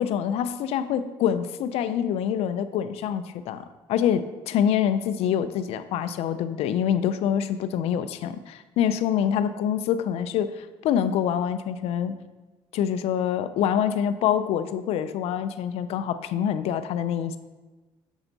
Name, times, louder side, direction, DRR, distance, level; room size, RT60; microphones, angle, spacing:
voice 1, 0.0-12.1 12.7-17.4, left 9 dB, 70° left, 12 dB, 0.4 m, -26 dB
7.1 x 4.3 x 4.0 m, 1.2 s
cardioid pair, 105°, 11 cm